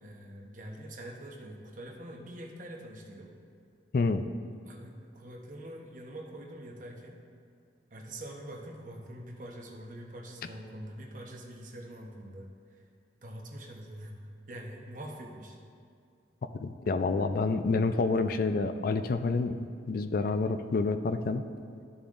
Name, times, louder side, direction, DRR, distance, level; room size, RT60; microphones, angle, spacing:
voice 1, 0.0-3.3 4.6-7.2 7.9-12.8 13.2-14.2 14.5-15.6, right 1 dB, 50° right, 0 dB, 1.0 m, -44 dB
voice 2, 3.9-4.3 16.6-21.4, left 3 dB, 55° left, 9 dB, 0.3 m, -28 dB
12.5 x 6.9 x 2.5 m, 2.3 s
head